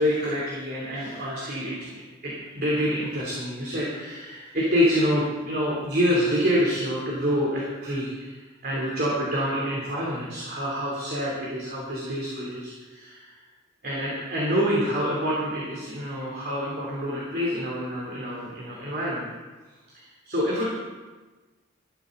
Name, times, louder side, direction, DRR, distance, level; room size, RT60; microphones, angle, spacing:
voice 1, 0.0-13.4 13.8-19.3 19.9-20.7, equal, 45° right, -5 dB, 3.4 m, -27 dB
18.0 x 12.5 x 4.0 m, 1.3 s
head